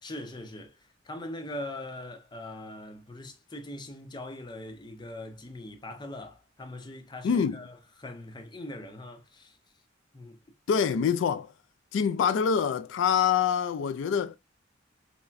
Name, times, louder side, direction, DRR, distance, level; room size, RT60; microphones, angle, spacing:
voice 1, 0.0-9.6 10.1-10.4, left 1 dB, 25° left, 0.6 m, -41 dB
voice 2, 7.2-7.6 10.7-11.5 11.9-14.4, left 7 dB, 80° left, 0.3 m, -25 dB
5.6 x 2.1 x 2.4 m
head